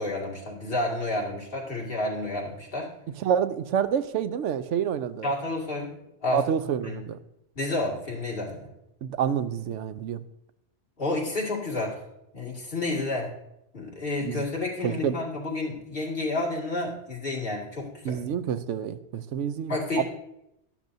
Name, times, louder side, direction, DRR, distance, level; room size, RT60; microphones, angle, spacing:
voice 1, 0.0-2.9 5.2-5.9 6.2-6.4 6.8-7.0 7.6-8.7 11.0-12.0 12.3-13.3 13.7-18.2 19.7-20.0, left 2 dB, 50° left, -3 dB, 2.4 m, -30 dB
voice 2, 3.2-5.3 6.3-7.2 9.0-10.2 14.2-14.4 14.8-15.2 18.0-20.0, right 8 dB, 85° right, 13 dB, 0.9 m, -28 dB
12.0 x 12.0 x 2.7 m, 0.84 s
omnidirectional pair, 1.2 m